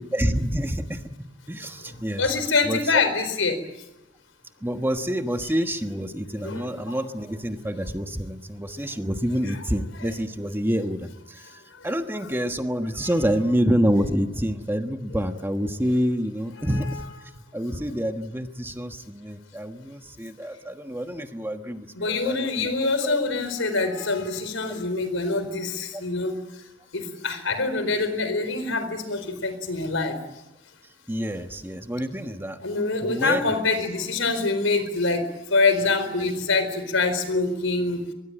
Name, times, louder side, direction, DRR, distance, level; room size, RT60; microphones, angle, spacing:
voice 1, 0.0-2.3 2.6-3.0 4.6-17.0 17.5-22.7 23.0-23.2 25.9-26.0 31.1-32.6 33.0-33.6, equal, 10° right, 7 dB, 1.3 m, -27 dB
voice 2, 2.2-3.6 6.4-6.7 22.0-26.3 26.9-30.2 32.6-35.2 35.5-38.0, left 3 dB, 90° left, 11 dB, 4.4 m, -25 dB
24.0 x 21.5 x 9.0 m, 0.89 s
head